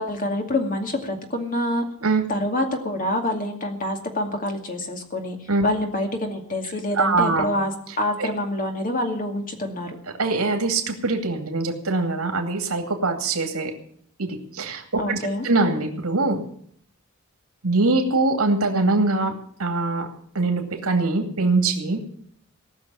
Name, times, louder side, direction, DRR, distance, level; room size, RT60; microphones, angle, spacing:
voice 1, 0.0-1.8 2.3-5.4 5.6-10.0 15.0-15.5, left 1 dB, 40° left, 4 dB, 2.4 m, -26 dB
voice 2, 7.0-7.5 8.2-8.3 10.2-13.7 14.2-15.2 15.4-16.4 17.6-19.3 19.6-20.1 20.3-22.0, right 3 dB, 80° right, 4 dB, 2.5 m, -22 dB
18.5 x 6.6 x 9.9 m, 0.62 s
head